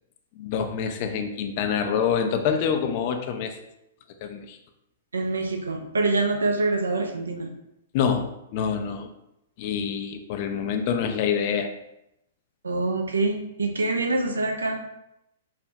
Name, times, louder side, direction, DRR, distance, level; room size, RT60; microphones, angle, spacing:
voice 1, 0.4-3.6 4.2-4.6 7.9-9.1 9.6-11.7, left 7 dB, 45° left, 6 dB, 0.3 m, -26 dB
voice 2, 5.1-7.5 12.6-14.8, right 2 dB, 85° right, 4 dB, 0.4 m, -25 dB
3.2 x 2.0 x 2.7 m, 0.85 s
hypercardioid pair, 115°, 0 cm